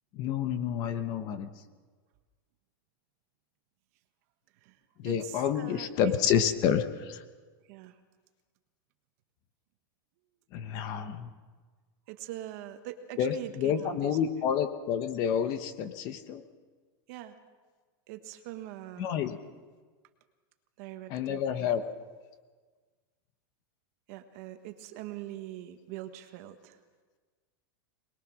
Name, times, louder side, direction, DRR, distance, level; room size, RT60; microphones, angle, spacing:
voice 1, 0.1-1.5 5.0-7.2 10.5-11.3 13.2-16.4 19.0-19.4 21.1-21.8, left 8 dB, 30° left, 10 dB, 1.1 m, -29 dB
voice 2, 4.6-6.4 7.7-8.0 12.1-14.2 17.1-17.4 18.1-19.3 20.8-21.8 24.1-26.8, right 13 dB, 45° right, 7 dB, 1.5 m, -43 dB
23.5 x 21.0 x 6.3 m, 1.4 s
supercardioid pair, 175°, 12 cm